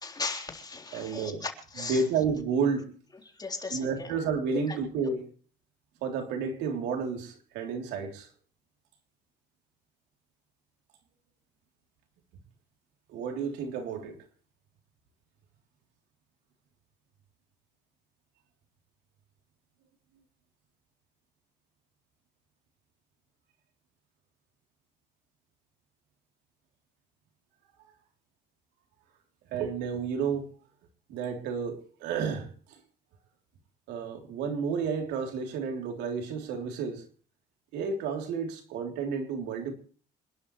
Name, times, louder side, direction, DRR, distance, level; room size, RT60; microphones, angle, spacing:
voice 1, 0.0-2.0 3.4-4.1 4.7-4.8, left 3 dB, 25° left, 3.7 m, -37 dB
voice 2, 0.9-1.4 1.8-2.9 3.7-5.3 6.0-8.3 13.1-14.2 29.5-30.5 31.1-32.5 33.9-37.0 37.7-39.7, right 5 dB, 90° right, 3.3 m, -31 dB
27.0 x 11.5 x 3.2 m
cardioid pair, 110°, 17 cm